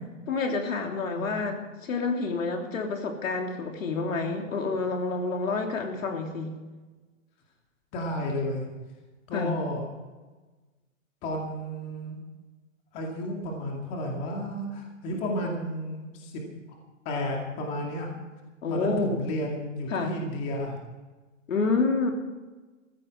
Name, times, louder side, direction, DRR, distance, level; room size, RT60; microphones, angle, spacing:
voice 1, 0.3-6.6 9.3-9.6 18.6-19.3 19.9-20.2 21.5-22.1, left 4 dB, 80° left, 3 dB, 3.3 m, -28 dB
voice 2, 1.0-1.3 7.9-8.7 9.3-9.9 11.2-12.2 12.9-16.3 16.7-16.8 17.0-18.1 18.7-20.8, equal, 15° left, 0 dB, 2.3 m, -32 dB
15.5 x 14.5 x 4.7 m, 1.2 s
hypercardioid pair, 175°, 39 cm